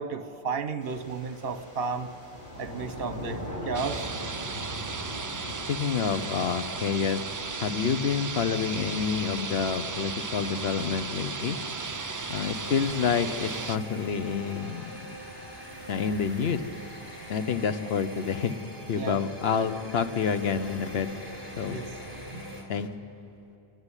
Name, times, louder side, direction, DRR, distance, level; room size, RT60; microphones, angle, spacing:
voice 1, 0.0-2.1 2.6-4.1 19.0-19.2 21.7-21.9 22.3-22.5, right 5 dB, 65° right, 10 dB, 1.1 m, -33 dB
sound 1, 0.8-17.4, equal, 55° left, 6.2 m, -43 dB
sound 2, 3.7-13.8, right 4 dB, 35° right, 0.3 m, -35 dB
voice 2, 5.3-7.2 7.6-11.6 12.3-15.0 15.9-16.6 17.3-18.5 18.9-21.1 21.6-21.8 22.7-22.9, left 6 dB, 75° left, 10 dB, 1.1 m, -28 dB
sound 3, 11.4-22.6, equal, 10° right, 3.4 m, -44 dB
27.5 x 10.5 x 9.8 m, 2.8 s
omnidirectional pair, 1.1 m